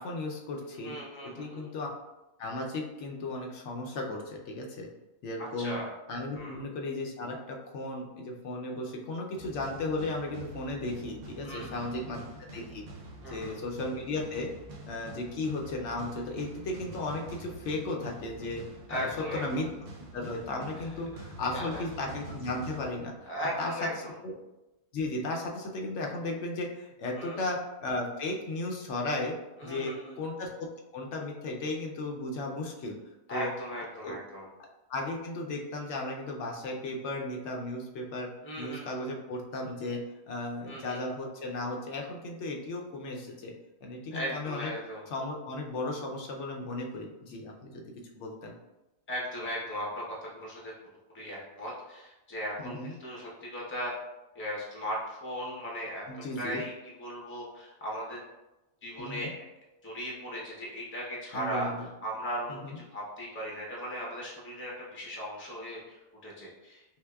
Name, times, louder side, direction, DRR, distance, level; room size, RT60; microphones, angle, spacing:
voice 1, 0.0-1.0 1.4-1.9 2.4-4.9 5.2-5.8 6.1-12.8 13.3-14.5 14.9-18.6 18.9-19.1 19.3-19.7 20.1-23.3 23.6-23.9 24.2-24.3 24.9-29.4 29.6-30.7 30.9-33.0 33.3-33.5 34.0-34.1 34.9-38.3 38.6-40.0 40.3-43.5 43.8-44.7 45.1-47.8 48.1-48.5 52.6-52.9 56.1-56.6 59.0-59.3 61.3-61.9 62.5-62.8, left 2 dB, 75° left, 0 dB, 0.9 m, -35 dB
voice 2, 0.8-1.7 5.4-5.9 6.3-6.6 11.4-12.0 13.2-13.6 18.9-19.6 21.4-21.8 23.3-24.2 27.1-27.4 29.6-30.2 33.3-34.5 38.4-39.0 40.7-41.1 44.1-45.0 49.1-50.7 51.1-53.9 54.3-56.7 57.0-58.2 58.8-59.3 59.8-61.7 62.0-66.8, equal, 15° left, -4 dB, 0.5 m, -37 dB
sound 1, 9.4-23.5, right 2 dB, 80° right, 1.0 m, -46 dB
5.5 x 2.1 x 2.3 m, 1.0 s
omnidirectional pair, 1.3 m